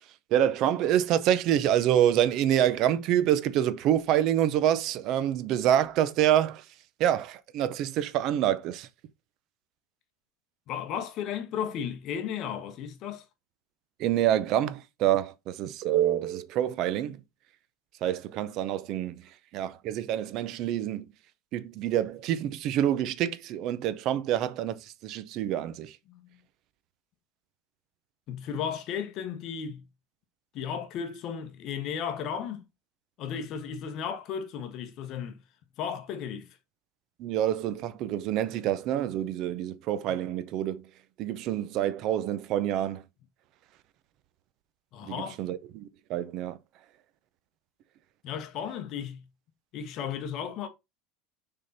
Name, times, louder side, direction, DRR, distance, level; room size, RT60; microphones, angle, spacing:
voice 1, 0.3-6.6 7.0-8.9 14.0-17.2 18.0-19.2 19.5-21.1 21.5-26.0 37.2-40.8 41.2-43.0 45.0-46.6, right 11 dB, 45° right, 0.8 m, -27 dB
voice 2, 10.7-13.2 26.1-26.2 28.3-29.8 30.5-32.6 33.2-35.4 35.8-36.5 44.9-45.4 48.2-49.2 49.7-50.7, left 8 dB, 40° left, 1.3 m, -34 dB
6.5 x 3.9 x 4.1 m
supercardioid pair, 155°, 0 cm